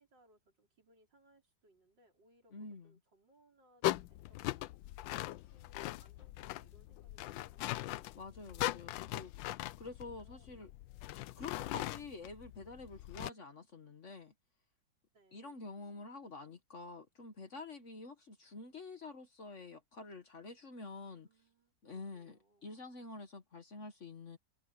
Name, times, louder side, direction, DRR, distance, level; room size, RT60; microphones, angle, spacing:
voice 1, 0.0-4.8 5.2-8.7 10.2-10.6 15.1-15.6 21.0-22.7, right 1 dB, 75° right, 5.2 m, -69 dB
voice 2, 2.5-2.9 8.1-9.3 9.8-10.7 11.3-14.3 15.3-21.3 21.8-24.4, left 3 dB, 45° left, 1.5 m, -48 dB
sound 1, 3.8-13.3, left 16 dB, 85° left, 1.3 m, -40 dB
omnidirectional pair, 2.0 m